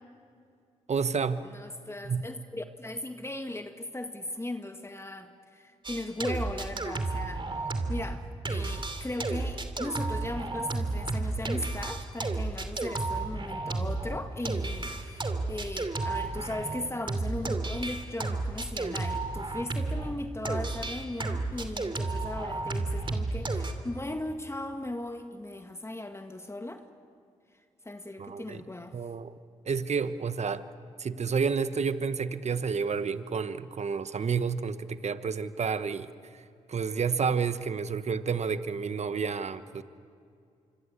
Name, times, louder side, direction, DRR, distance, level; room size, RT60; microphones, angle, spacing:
voice 1, 0.9-1.4 2.0-2.2 28.2-28.6 28.9-29.3 29.6-30.6 31.0-36.1 36.7-39.8, right 5 dB, 55° right, 12 dB, 1.2 m, -30 dB
voice 2, 1.4-26.8 27.9-29.0, left 1 dB, 20° left, 6 dB, 2.0 m, -38 dB
sound 1, 5.8-8.2 8.4-20.1 20.4-23.7, right 3 dB, 40° right, 2.9 m, -32 dB
26.0 x 25.0 x 8.3 m, 2.4 s
supercardioid pair, 50°, 13 cm